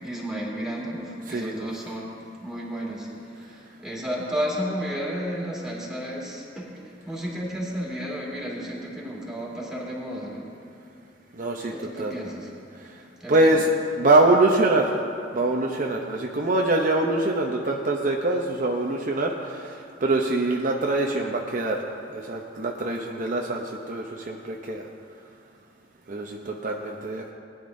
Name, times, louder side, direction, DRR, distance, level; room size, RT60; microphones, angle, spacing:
voice 1, 0.0-2.1 2.4-10.5 11.7-12.5 13.2-13.6, equal, 5° right, -5 dB, 2.3 m, -32 dB
voice 2, 1.3-1.7 11.3-12.1 13.3-13.7 14.0-14.9 15.3-21.8 22.1-24.8 26.1-27.3, right 2 dB, 45° right, 1 dB, 0.7 m, -24 dB
19.0 x 10.5 x 2.6 m, 2.4 s
head